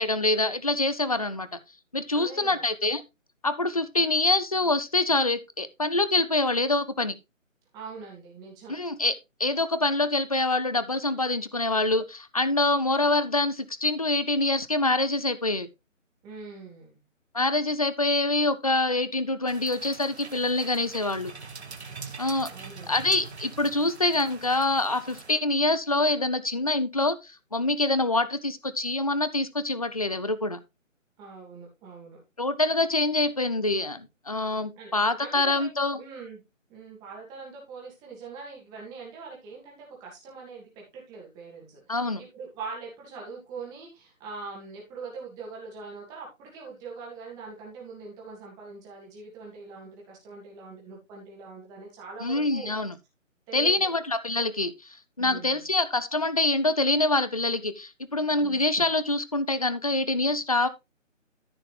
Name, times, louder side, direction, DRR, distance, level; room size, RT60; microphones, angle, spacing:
voice 1, 0.0-1.5 1.9-3.0 3.4-7.2 8.7-9.1 9.4-15.7 17.3-21.3 22.2-22.5 22.9-30.6 32.4-36.0 41.9-42.2 52.2-53.0 53.5-60.7, left 2 dB, 30° left, 0.5 m, -25 dB
voice 2, 2.1-2.7 7.7-8.7 16.2-17.0 22.0-22.1 22.5-23.0 31.2-32.2 34.7-36.4 36.7-52.7 53.5-53.9 55.2-55.6 58.4-58.7, right 4 dB, 10° right, 2.5 m, -43 dB
sound 1, 19.5-25.3, right 5 dB, 55° right, 1.6 m, -43 dB
14.0 x 5.5 x 3.3 m
figure-of-eight pair, 160°, 39 cm